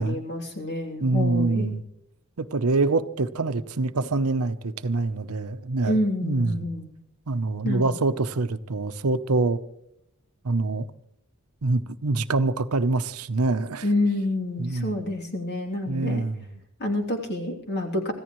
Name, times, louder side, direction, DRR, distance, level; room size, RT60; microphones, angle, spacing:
voice 1, 0.0-1.7 5.9-6.9 7.6-7.9 13.8-16.2 16.8-18.1, left 1 dB, 50° left, 3.0 m, -28 dB
voice 2, 1.0-1.8 2.4-6.7 7.3-9.6 10.4-10.9 11.6-13.9 14.6-15.0 15.9-16.6, right 3 dB, 80° right, 0.8 m, -25 dB
25.5 x 14.5 x 3.1 m
head